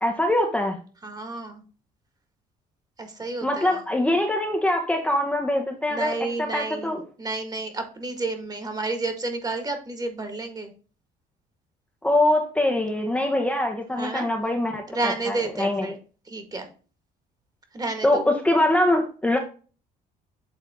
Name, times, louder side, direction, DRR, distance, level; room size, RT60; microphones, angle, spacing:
voice 1, 0.0-0.8 3.4-7.0 12.0-15.9 18.0-19.4, left 1 dB, 5° left, 1 dB, 0.9 m, -23 dB
voice 2, 1.0-1.6 3.0-3.8 5.9-6.9 7.2-10.7 14.0-14.3 14.9-16.0 16.3-16.7 17.7-18.2, right 3 dB, 25° right, 6 dB, 1.7 m, -30 dB
8.4 x 3.5 x 3.6 m, 0.37 s
cardioid pair, 110°, 17 cm